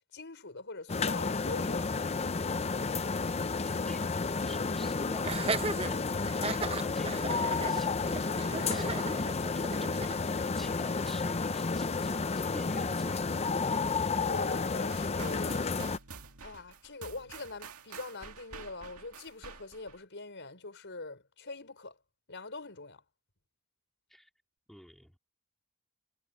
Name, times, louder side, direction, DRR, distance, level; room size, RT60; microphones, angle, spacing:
voice 1, 0.1-1.9 14.3-15.7 16.4-22.0 22.3-23.0, left 3 dB, 55° left, 5.7 m, -42 dB
sound 1, 0.9-16.0, left 4 dB, 30° left, 0.6 m, -31 dB
voice 2, 3.2-5.3 5.9-13.4 24.1-24.3 24.7-25.1, equal, ahead, 3.8 m, -48 dB
Laughter, 5.2-10.2, right 3 dB, 25° right, 1.2 m, -36 dB
sound 2, 14.9-20.0, right 5 dB, 80° right, 2.1 m, -49 dB
head